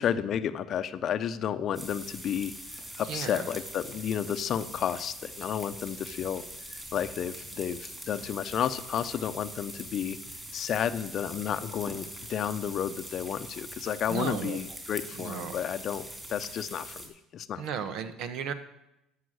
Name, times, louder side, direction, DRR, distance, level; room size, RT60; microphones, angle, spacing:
voice 1, 0.0-2.5 3.0-6.4 6.7-10.2 10.5-16.0 16.3-17.6, left 9 dB, 50° left, 12 dB, 0.7 m, -32 dB
sound 1, 1.7-17.1, right 1 dB, 10° right, 2.8 m, -43 dB
voice 2, 3.0-3.5 6.1-6.2 14.1-14.6 15.1-15.6 17.6-18.5, right 7 dB, 65° right, 11 dB, 1.0 m, -35 dB
13.0 x 5.7 x 6.4 m, 0.88 s
supercardioid pair, 90°, 0 cm